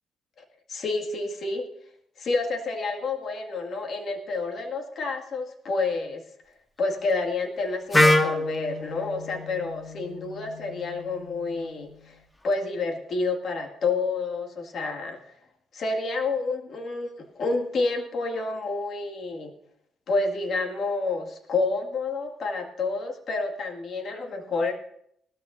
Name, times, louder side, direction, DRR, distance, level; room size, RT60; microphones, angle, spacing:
voice 1, 0.7-1.7 2.2-6.2 6.8-12.2 12.4-15.2 15.7-19.5 20.1-24.7, left 3 dB, 55° left, 2 dB, 2.0 m, -29 dB
Wind instrument woodwind instrument, 7.9-11.8, left 1 dB, 15° left, 1.4 m, -26 dB
19.0 x 13.5 x 2.7 m, 0.70 s
cardioid pair, 90°, 0 cm